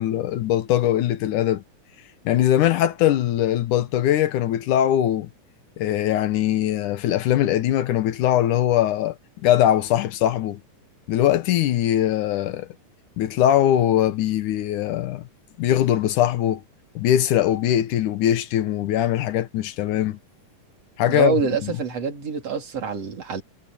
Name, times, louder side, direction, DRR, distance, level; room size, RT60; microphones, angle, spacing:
voice 1, 0.0-1.6 2.3-5.3 5.8-10.6 11.1-12.7 13.2-15.2 15.6-16.6 17.0-20.2 21.0-21.4 21.6-21.8, left 12 dB, 75° left, 2.5 m, -21 dB
voice 2, 21.1-23.4, right 6 dB, 50° right, 4.7 m, -26 dB
omnidirectional pair, 3.8 m